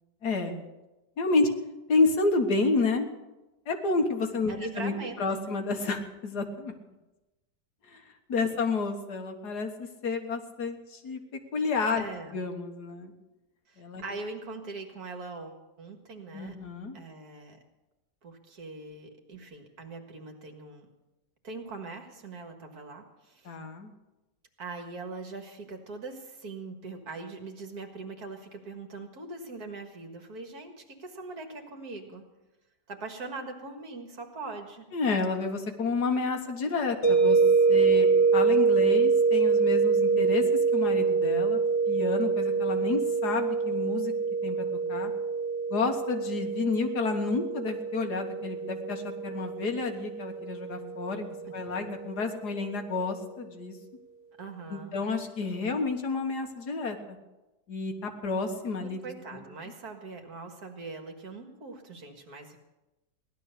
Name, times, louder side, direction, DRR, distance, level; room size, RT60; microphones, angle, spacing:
voice 1, 0.2-0.7 1.2-1.5 1.9-3.1 3.7-4.9 5.2-6.7 7.9-8.0 8.3-11.2 11.5-13.1 13.8-14.0 16.3-16.9 23.5-23.9 34.9-37.4 37.7-40.4 40.7-41.6 41.9-44.1 44.4-45.1 45.7-53.8 54.7-57.2 57.7-59.0, left 3 dB, 70° left, 5 dB, 2.0 m, -30 dB
voice 2, 4.5-5.2 12.0-12.4 13.7-16.6 16.9-17.6 18.2-20.9 21.4-23.5 24.6-32.3 32.9-34.9 54.4-55.0 58.8-62.6, right 3 dB, 65° right, 4 dB, 2.3 m, -41 dB
sound 1, 37.0-52.0, right 4 dB, 45° left, 1.9 m, -25 dB
17.0 x 11.5 x 6.6 m, 1.0 s
omnidirectional pair, 1.8 m